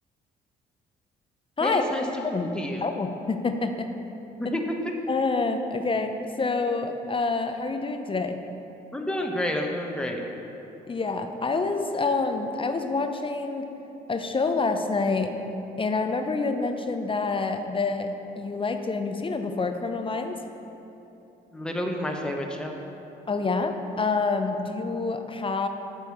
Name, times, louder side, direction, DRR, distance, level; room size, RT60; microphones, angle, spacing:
voice 1, 1.6-2.0 2.5-2.8 4.4-4.6 8.9-10.2 21.5-22.7, left 1 dB, 5° left, 1 dB, 1.0 m, -29 dB
voice 2, 2.8-3.9 5.1-8.4 10.9-13.7 14.1-15.3 15.8-20.4 23.3-25.7, left 3 dB, 25° left, 6 dB, 0.7 m, -27 dB
7.8 x 4.6 x 7.1 m, 3.0 s
supercardioid pair, 65°, 19 cm